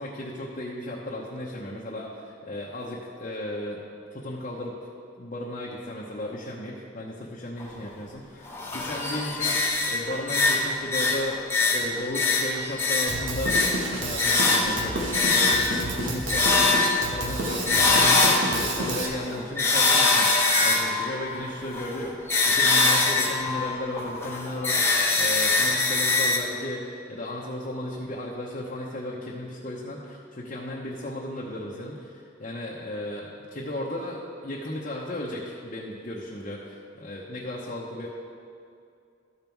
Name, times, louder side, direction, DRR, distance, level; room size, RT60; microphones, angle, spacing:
voice 1, 0.0-3.8 4.1-4.8 5.2-38.1, left 1 dB, 40° left, -4 dB, 0.8 m, -35 dB
sound 1, 7.6-7.7 8.5-18.8 19.3-26.4, left 3 dB, 15° left, 0.9 m, -23 dB
Drum kit, 13.1-19.1, right 1 dB, 80° right, 1.2 m, -30 dB
13.0 x 5.4 x 4.6 m, 2.5 s
head